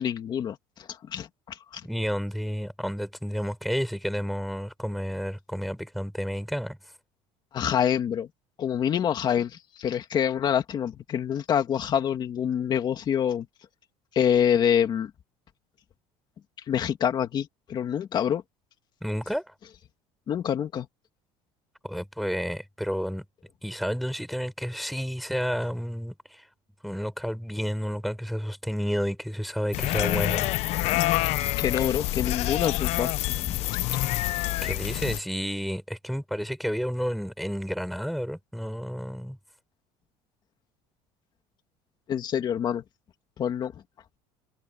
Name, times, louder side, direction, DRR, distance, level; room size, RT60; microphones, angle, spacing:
voice 1, 0.0-1.8 7.5-8.3 8.6-13.5 14.1-15.1 16.7-18.4 20.3-20.9 31.6-33.1 33.4-33.7 42.1-42.8 43.4-43.8, left 9 dB, 30° left, 2.4 m, -26 dB
voice 2, 1.8-6.8 19.0-19.5 21.8-23.2 23.6-26.4 26.8-30.5 34.6-39.4, equal, ahead, 5.1 m, -31 dB
sound 1, 29.7-35.2, left 17 dB, 50° left, 0.7 m, -27 dB
cardioid pair, 165°, 14 cm